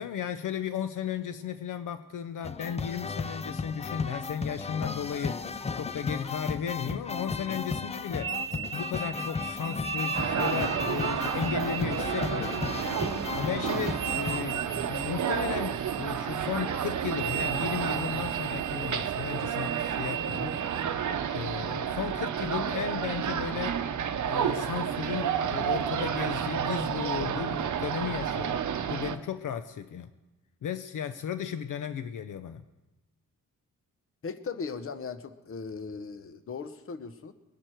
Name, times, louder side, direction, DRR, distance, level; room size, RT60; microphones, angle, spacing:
voice 1, 0.0-8.4 8.7-12.6 13.3-21.0 21.3-23.8 24.3-28.6 28.9-30.1 30.6-32.6, left 8 dB, 70° left, 11 dB, 0.6 m, -35 dB
sound 1, 2.4-14.4, left 4 dB, 20° left, 0.4 m, -34 dB
sound 2, 8.2-20.9, right 10 dB, 85° right, 1.0 m, -38 dB
sound 3, 10.1-29.2, right 8 dB, 60° right, 0.8 m, -31 dB
voice 2, 34.2-37.3, left 5 dB, 40° left, 11 dB, 0.9 m, -38 dB
21.5 x 11.0 x 4.5 m, 1.1 s
wide cardioid pair, 135°, 33 cm